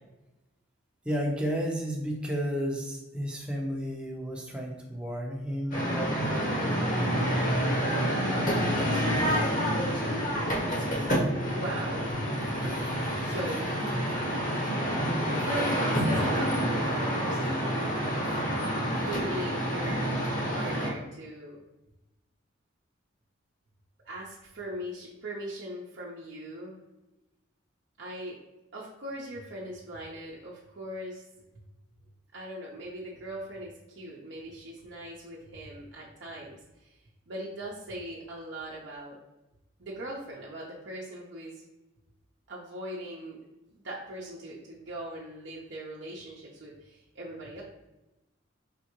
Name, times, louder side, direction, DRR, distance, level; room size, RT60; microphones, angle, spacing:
voice 1, 1.0-6.6 7.0-7.7 8.4-8.7, equal, 5° right, -1 dB, 0.7 m, -33 dB
sound 1, 5.7-20.9, equal, 40° left, 1.1 m, -28 dB
voice 2, 11.4-12.3 13.2-13.7 15.3-18.4 18.9-20.1 20.5-21.6 24.0-26.8 28.0-28.4 28.7-31.3 32.3-39.2 39.8-41.6 42.5-43.4 43.7-47.6, right 1 dB, 60° right, -5 dB, 0.7 m, -40 dB
5.1 x 3.4 x 3.0 m, 1.0 s
head